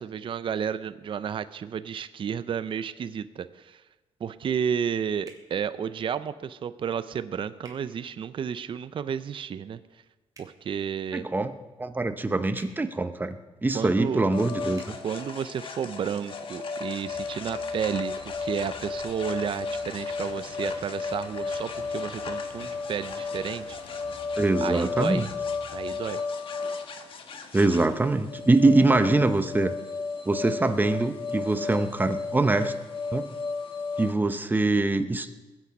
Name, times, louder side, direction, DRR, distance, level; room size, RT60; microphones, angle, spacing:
voice 1, 0.0-3.8 4.2-9.8 10.4-11.3 13.7-14.2 15.0-18.1 18.4-23.8 24.6-25.2 25.7-26.2, right 8 dB, 50° right, 13 dB, 0.5 m, -32 dB
sound 1, 5.2-5.5 7.6-7.8 10.3-10.5 12.5-12.7 14.7-14.9, right 3 dB, 35° right, 3.1 m, -49 dB
voice 2, 11.1-15.0 24.4-25.3 27.5-29.7 30.3-32.7 33.1-33.3 34.0-35.3, right 2 dB, 15° right, 9 dB, 0.9 m, -24 dB
sound 2, 14.3-34.1, left 4 dB, 50° left, 1.4 m, -34 dB
Engine / Mechanisms, 17.0-26.0, left 3 dB, 80° left, 4.6 m, -50 dB
21.0 x 8.5 x 5.3 m, 1.2 s
cardioid pair, 100°, 11 cm